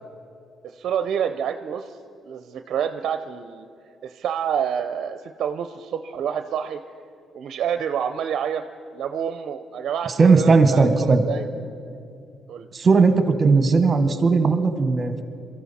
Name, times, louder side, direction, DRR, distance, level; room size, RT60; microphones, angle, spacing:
voice 1, 0.6-2.0 2.2-3.7 4.0-6.8 7.3-8.6 8.9-11.4 12.5-12.7, right 8 dB, 70° right, 8 dB, 0.5 m, -28 dB
voice 2, 10.2-11.2 12.7-15.2, right 4 dB, 35° right, 8 dB, 1.3 m, -17 dB
23.0 x 14.0 x 4.2 m, 2.5 s
cardioid pair, 90°, 0 cm